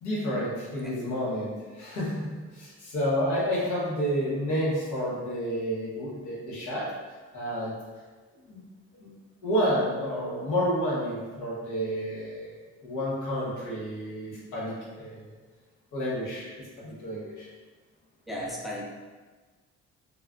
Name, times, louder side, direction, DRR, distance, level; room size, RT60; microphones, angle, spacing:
voice 1, 0.0-2.3 2.5-6.9 7.3-7.7 8.5-8.6 9.0-9.1 9.4-12.5 12.8-15.3 15.9-16.5 16.8-17.5, equal, 80° left, -5 dB, 1.0 m, -30 dB
voice 2, 18.3-18.8, equal, ahead, -3 dB, 0.6 m, -35 dB
3.4 x 2.3 x 2.4 m, 1.4 s
supercardioid pair, 65°, 30 cm